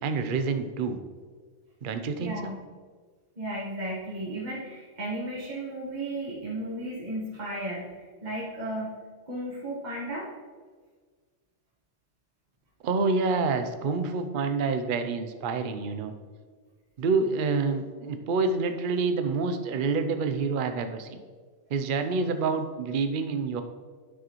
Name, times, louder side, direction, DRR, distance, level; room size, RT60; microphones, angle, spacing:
voice 1, 0.0-1.0 1.8-2.5 12.8-16.1 17.0-21.2 21.7-23.6, right 4 dB, 50° right, 8 dB, 0.7 m, -27 dB
voice 2, 2.2-2.6 3.4-8.9 9.2-10.3, right 1 dB, 35° right, -7 dB, 1.5 m, -34 dB
9.7 x 6.4 x 3.0 m, 1.5 s
omnidirectional pair, 1.3 m